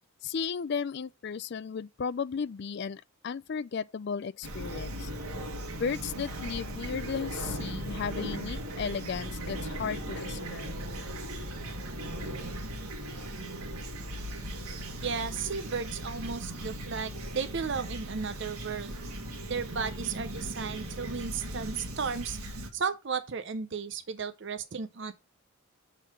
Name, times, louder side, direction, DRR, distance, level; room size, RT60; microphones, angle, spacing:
voice 1, 0.2-5.1 5.7-10.7, left 6 dB, 50° left, 0.3 m, -35 dB
Fowl / Chirp tweet, 4.4-22.7, right 1 dB, 85° right, 1.7 m, -38 dB
voice 2, 15.0-19.0 19.5-22.4 22.7-25.1, right 5 dB, 55° right, 0.6 m, -34 dB
6.4 x 3.8 x 6.0 m
head